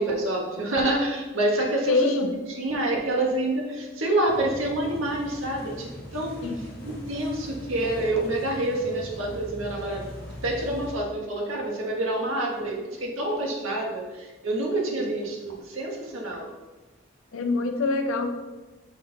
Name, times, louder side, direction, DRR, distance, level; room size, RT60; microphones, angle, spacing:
voice 1, 0.0-10.1 10.4-16.5, right 1 dB, 80° right, -1 dB, 1.1 m, -27 dB
voice 2, 1.9-2.3 6.4-6.6 13.4-13.5 17.3-18.3, left 3 dB, 85° left, 5 dB, 0.7 m, -25 dB
sound 1, 4.3-11.0, equal, 45° left, 1.5 m, -41 dB
6.4 x 3.7 x 4.4 m, 1.2 s
head